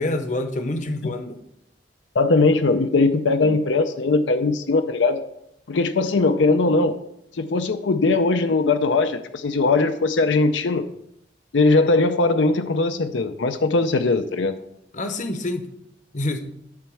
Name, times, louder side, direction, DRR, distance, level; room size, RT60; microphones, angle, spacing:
voice 1, 0.0-1.4 14.9-15.7 16.1-16.5, left 2 dB, 45° left, 8 dB, 0.8 m, -27 dB
voice 2, 2.2-5.2 5.7-6.9 7.4-10.8 11.5-14.5, left 3 dB, 80° left, 8 dB, 0.6 m, -20 dB
11.0 x 4.5 x 6.3 m, 0.77 s
head